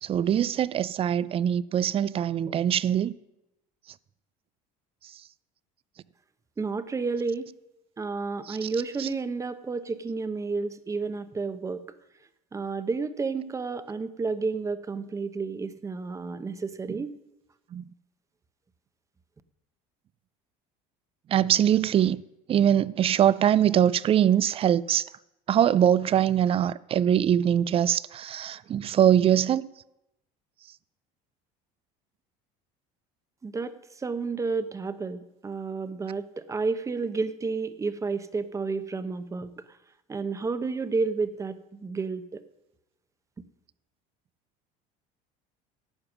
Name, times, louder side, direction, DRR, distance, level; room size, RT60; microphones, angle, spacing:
voice 1, 0.0-3.1 8.5-8.7 9.0-9.1 16.9-17.0 17.7-17.8 21.3-22.2 22.5-25.1 25.5-29.7, right 10 dB, 35° right, 0.4 m, -23 dB
voice 2, 6.6-7.5 8.0-11.8 12.5-17.1 33.4-39.5 40.1-42.4, right 4 dB, 20° right, 0.8 m, -31 dB
12.0 x 8.8 x 6.0 m
supercardioid pair, 115°, 17 cm